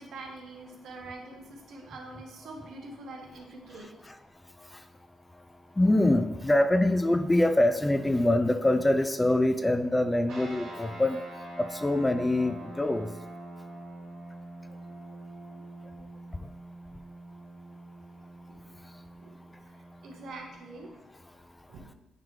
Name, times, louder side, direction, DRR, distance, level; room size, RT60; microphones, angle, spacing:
voice 1, 0.0-3.9 18.5-18.6 19.2-19.4 19.7-20.9 21.7-21.9, right 2 dB, 70° right, 1 dB, 1.3 m, -44 dB
voice 2, 3.7-4.2 4.6-4.9 5.7-11.2 11.6-13.1 16.4-16.5 18.8-18.9, left 1 dB, 15° left, 10 dB, 0.4 m, -25 dB
sound 1, 10.3-20.9, right 1 dB, 90° right, 2.1 m, -45 dB
9.1 x 3.3 x 3.6 m, 1.0 s
cardioid pair, 90°, 0 cm